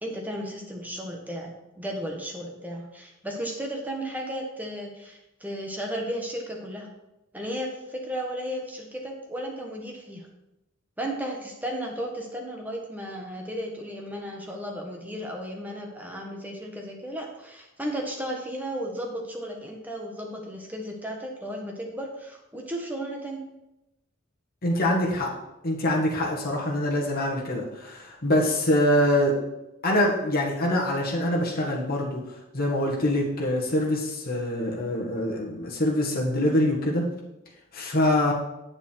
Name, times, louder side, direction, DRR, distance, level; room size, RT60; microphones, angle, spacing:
voice 1, 0.0-6.9 7.3-10.3 11.0-23.5, equal, 10° right, 0 dB, 1.4 m, -34 dB
voice 2, 24.6-25.3 25.6-29.4 29.8-32.2 32.5-37.1 37.7-38.3, left 1 dB, 45° left, -3 dB, 1.7 m, -24 dB
8.6 x 6.9 x 4.6 m, 0.92 s
head